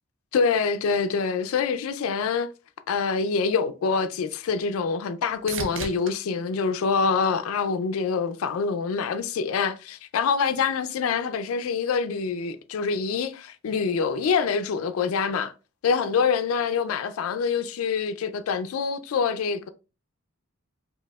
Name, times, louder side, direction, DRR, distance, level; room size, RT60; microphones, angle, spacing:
voice 1, 0.3-2.5 2.9-15.5 15.8-19.7, left 5 dB, 80° left, 0.3 m, -25 dB
sound 1, 3.7-8.0 8.5-9.1 16.9-17.0, right 4 dB, 65° right, 0.6 m, -41 dB
4.7 x 2.7 x 2.2 m
head